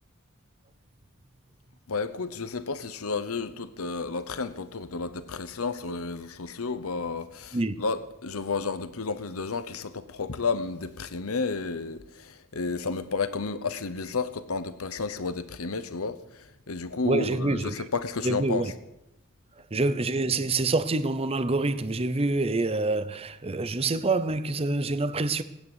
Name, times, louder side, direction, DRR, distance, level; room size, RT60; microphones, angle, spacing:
voice 1, 1.9-18.7, left 4 dB, 85° left, 0.9 m, -32 dB
voice 2, 17.0-17.7 18.2-18.7 19.7-25.4, right 2 dB, 25° right, 0.7 m, -26 dB
19.0 x 9.5 x 8.1 m
head